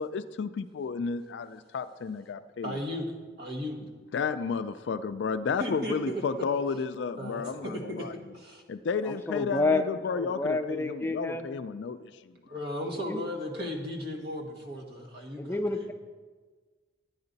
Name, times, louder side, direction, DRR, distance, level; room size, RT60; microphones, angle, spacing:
voice 1, 0.0-2.8 4.1-8.1 8.7-12.3, left 5 dB, 65° left, 11 dB, 0.3 m, -32 dB
voice 2, 2.6-3.1 3.4-3.8 5.6-6.4 7.2-8.1 8.3-8.6 12.5-15.6, equal, 55° right, 2 dB, 1.4 m, -35 dB
voice 3, 9.0-9.9 10.1-11.5 13.0-13.2 15.4-15.9, left 2 dB, 10° left, 6 dB, 0.5 m, -29 dB
9.7 x 9.7 x 4.0 m, 1.4 s
head